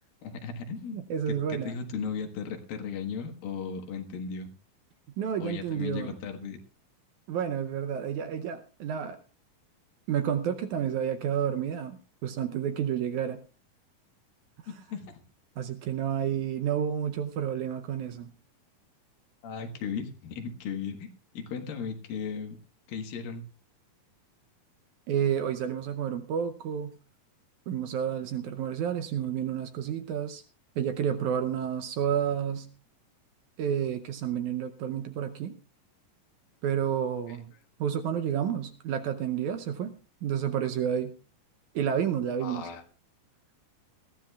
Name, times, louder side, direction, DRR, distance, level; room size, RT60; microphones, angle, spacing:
voice 1, 0.2-1.0 1.3-4.5 5.4-6.6 14.7-15.2 19.4-22.6 22.9-23.4 37.3-37.4 42.4-42.8, left 6 dB, 85° left, 5 dB, 3.2 m, -36 dB
voice 2, 0.9-1.7 5.2-6.2 7.3-9.2 10.1-13.4 15.6-18.3 25.1-26.9 27.7-30.4 30.8-32.7 33.6-35.6 36.6-37.5 37.8-39.9 40.2-41.1 41.8-42.7, right 9 dB, 75° right, 8 dB, 1.9 m, -30 dB
20.5 x 14.5 x 2.3 m, 0.36 s
omnidirectional pair, 4.0 m